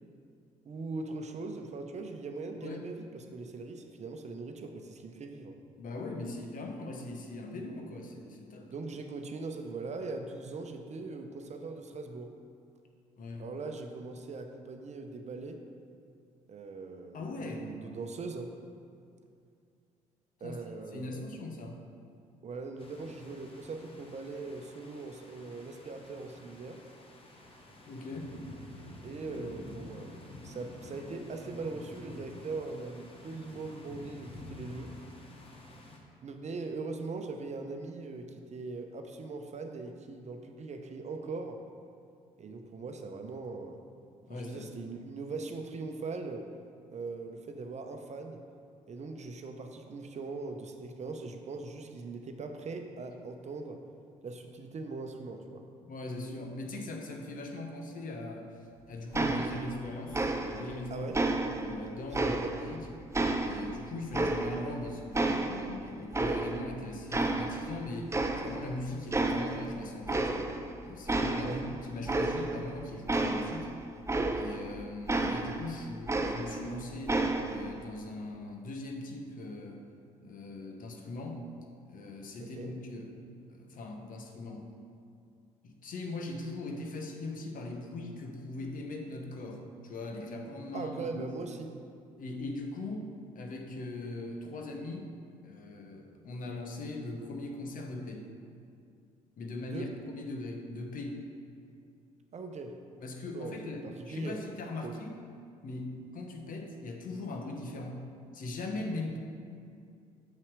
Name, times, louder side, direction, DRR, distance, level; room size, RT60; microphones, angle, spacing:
voice 1, 0.6-5.6 8.7-12.3 13.4-15.6 16.5-18.5 20.4-21.3 22.4-26.8 29.0-30.2 30.4-34.9 36.2-41.6 42.4-43.8 44.3-46.5 46.9-48.4 48.9-53.8 54.2-55.6 60.9-61.2 62.2-62.6 71.4-71.6 82.4-82.7 90.7-91.7 99.7-99.9 102.3-102.8 103.3-104.4 104.8-104.9, right 3 dB, 45° right, 5 dB, 0.8 m, -40 dB
voice 2, 2.6-2.9 5.8-8.7 13.2-13.5 17.1-18.0 20.4-20.6 20.9-21.8 27.9-28.4 44.3-44.7 55.8-58.5 58.9-61.1 61.6-62.9 63.4-70.5 70.8-73.7 74.3-79.8 80.2-81.5 81.8-83.2 83.5-84.7 85.6-91.3 92.2-95.1 95.4-98.3 99.4-101.2 103.0-105.2 105.6-108.1 108.3-109.2, left 2 dB, 55° left, 3 dB, 1.1 m, -40 dB
sound 1, 22.8-36.0, left 1 dB, 35° left, 1.4 m, -49 dB
sound 2, 59.1-59.8 60.1-60.8 61.1-62.8 63.1-64.8 65.1-66.8 67.1-67.8 68.1-68.8 69.1-69.7 70.1-70.7 71.1-74.7 75.1-76.7 77.1-77.7, right 2 dB, 15° right, 0.6 m, -31 dB
6.9 x 5.7 x 4.7 m, 2.4 s
hypercardioid pair, 55°, 17 cm